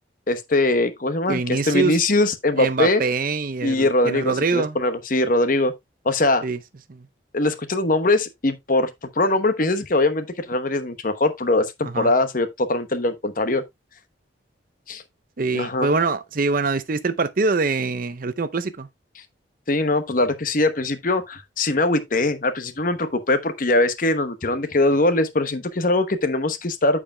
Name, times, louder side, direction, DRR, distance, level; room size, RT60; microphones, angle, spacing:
voice 1, 0.3-3.0 3.6-5.7 6.0-6.5 7.3-8.9 9.1-13.6 14.9-15.0 15.5-16.0 19.7-27.0, left 2 dB, 45° left, 1.0 m, -21 dB
voice 2, 1.3-2.0 2.6-4.8 6.4-6.6 6.9-7.0 11.9-12.1 15.4-18.9, right 4 dB, 45° right, 0.6 m, -24 dB
14.0 x 4.9 x 2.2 m
head